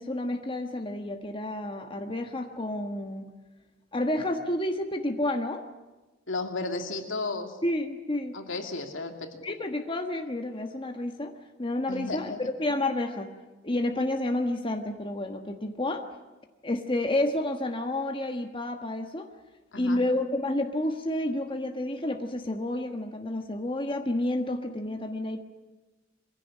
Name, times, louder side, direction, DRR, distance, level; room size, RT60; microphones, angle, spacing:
voice 1, 0.0-3.3 3.9-5.6 7.6-8.4 9.4-13.3 13.6-16.0 16.6-19.3 19.7-25.4, left 1 dB, 25° left, 4 dB, 1.4 m, -30 dB
voice 2, 6.3-7.5 8.3-9.3 11.9-12.4 19.7-20.0, left 3 dB, 75° left, 5 dB, 2.5 m, -33 dB
23.0 x 16.0 x 9.9 m, 1.2 s
head